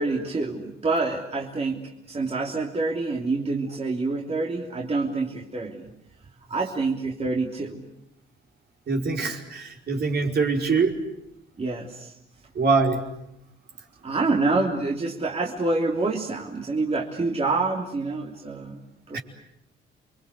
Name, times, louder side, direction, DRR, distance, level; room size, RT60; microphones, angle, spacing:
voice 1, 0.0-1.8 2.1-5.9 6.5-7.9 11.6-12.1 14.0-18.8 19.1-19.2, right 3 dB, 30° right, -1 dB, 3.2 m, -27 dB
voice 2, 8.9-10.9 12.5-13.0 19.1-19.2, right 4 dB, 55° right, 1 dB, 4.9 m, -23 dB
29.0 x 23.5 x 8.3 m, 0.81 s
cardioid pair, 90°, 20 cm